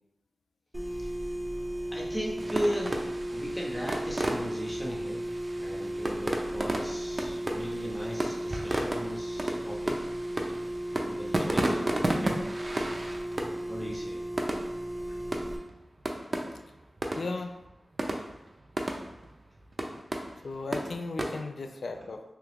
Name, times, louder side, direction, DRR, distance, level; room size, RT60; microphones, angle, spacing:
sound 1, 0.7-15.6, right 1 dB, 10° right, 0.7 m, -35 dB
voice 1, 0.9-1.3 1.9-5.2 5.5-10.0 10.9-12.4 13.7-14.3, equal, 15° left, -2 dB, 0.9 m, -37 dB
sound 2, 2.4-21.4, right 1 dB, 45° right, 0.5 m, -34 dB
voice 2, 17.1-17.6 20.4-22.2, left 3 dB, 75° left, 6 dB, 0.3 m, -36 dB
2.9 x 2.3 x 3.3 m, 0.92 s
cardioid pair, 40°, 0 cm